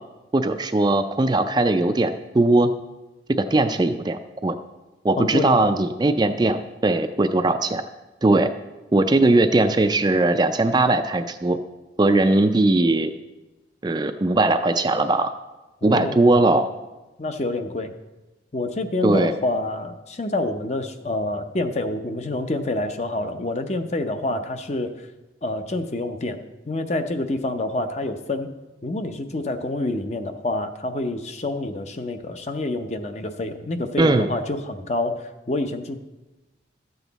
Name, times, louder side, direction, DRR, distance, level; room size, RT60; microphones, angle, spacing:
voice 1, 0.3-2.7 3.4-4.6 5.0-7.8 8.2-8.5 8.9-11.6 12.0-13.1 13.8-15.3 15.8-16.7 19.0-19.4 34.0-34.3, right 2 dB, 20° right, 8 dB, 0.4 m, -19 dB
voice 2, 5.2-5.6 15.8-16.3 17.2-17.9 18.5-24.9 25.4-26.4 26.7-28.5 28.8-36.0, left 2 dB, 35° left, 8 dB, 0.6 m, -27 dB
13.0 x 8.0 x 4.0 m, 1.1 s
head